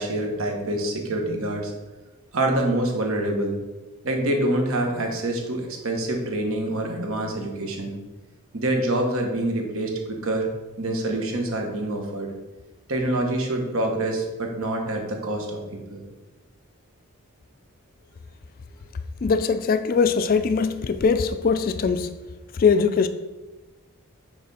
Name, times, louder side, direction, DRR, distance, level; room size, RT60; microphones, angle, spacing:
voice 1, 0.0-1.7 2.3-3.6 4.0-8.0 8.5-10.5 10.8-12.3 12.9-16.0, right 1 dB, 75° right, 1.3 m, -26 dB
voice 2, 19.2-22.1 22.5-23.1, left 5 dB, 40° left, 0.3 m, -21 dB
5.9 x 4.9 x 4.2 m
head